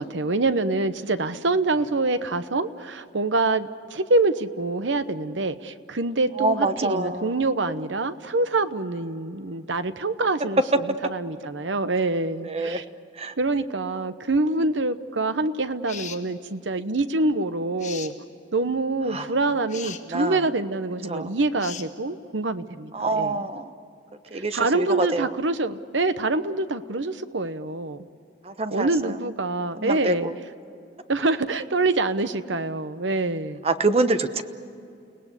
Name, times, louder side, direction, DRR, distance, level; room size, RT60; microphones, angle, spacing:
voice 1, 0.0-12.8 13.4-18.1 18.5-23.4 24.3-28.1 28.7-30.3 31.1-33.6, right 2 dB, 80° right, 11 dB, 1.0 m, -25 dB
voice 2, 6.4-7.3 12.4-12.8 13.2-13.3 19.1-19.3 20.1-20.4 21.1-21.3 22.9-23.7 24.3-25.3 28.4-29.1 29.8-30.3 33.6-34.4, right 2 dB, 30° right, 9 dB, 1.0 m, -26 dB
sound 1, 15.9-16.2 17.8-18.1 19.7-20.0 21.6-21.9, left 8 dB, 40° left, 1.4 m, -37 dB
30.0 x 18.5 x 8.3 m, 2.6 s
head